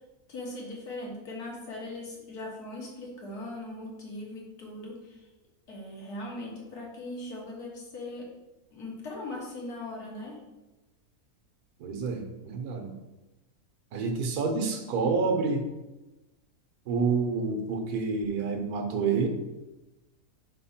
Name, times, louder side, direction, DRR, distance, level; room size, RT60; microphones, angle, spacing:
voice 1, 0.3-5.3 5.7-8.3 8.7-10.4, left 2 dB, 85° left, -3 dB, 2.1 m, -39 dB
voice 2, 11.8-12.9 13.9-15.7 16.9-19.3, right 4 dB, 80° right, 4 dB, 1.4 m, -28 dB
4.5 x 4.3 x 5.7 m, 1.1 s
omnidirectional pair, 1.6 m